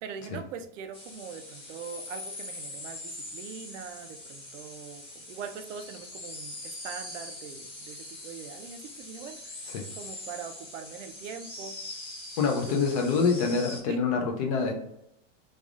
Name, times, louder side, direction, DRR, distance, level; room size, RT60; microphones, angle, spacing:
voice 1, 0.0-11.8 12.7-12.8 13.9-14.0, right 7 dB, 75° right, 9 dB, 0.6 m, -42 dB
sound 1, 0.9-13.8, left 2 dB, 15° left, 0.9 m, -42 dB
voice 2, 12.4-14.7, left 5 dB, 30° left, 3 dB, 0.4 m, -26 dB
3.2 x 2.4 x 3.5 m, 0.79 s
supercardioid pair, 160°, 37 cm